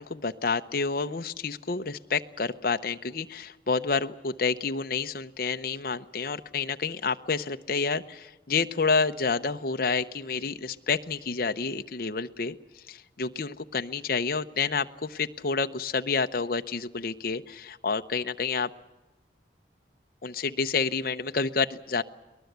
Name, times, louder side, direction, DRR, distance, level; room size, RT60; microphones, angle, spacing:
voice 1, 0.0-12.6 12.9-18.7 20.2-22.0, left 4 dB, 50° left, 8 dB, 0.7 m, -29 dB
23.5 x 19.5 x 8.1 m, 1.1 s
head